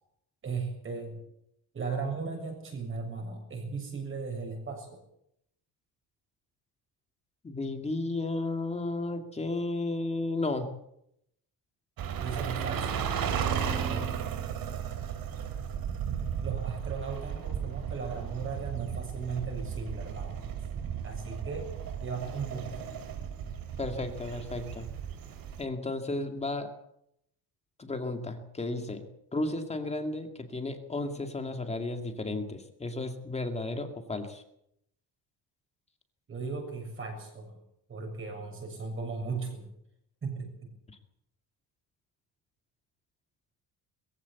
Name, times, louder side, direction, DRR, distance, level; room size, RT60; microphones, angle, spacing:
voice 1, 0.4-1.2 1.7-5.0 12.2-13.1 13.4-14.2 16.4-20.4 21.0-21.7 22.0-22.9 36.3-37.6 37.9-39.7 40.2-40.7, right 4 dB, 30° right, 4 dB, 7.0 m, -37 dB
voice 2, 7.4-10.7 23.8-24.9 25.6-26.7 27.8-29.0 29.3-34.4 40.9-41.0, left 2 dB, 15° left, 6 dB, 2.3 m, -33 dB
sound 1, 12.0-25.6, right 8 dB, 60° right, 3.0 m, -35 dB
21.5 x 15.5 x 8.4 m, 0.76 s
cardioid pair, 165°, 40 cm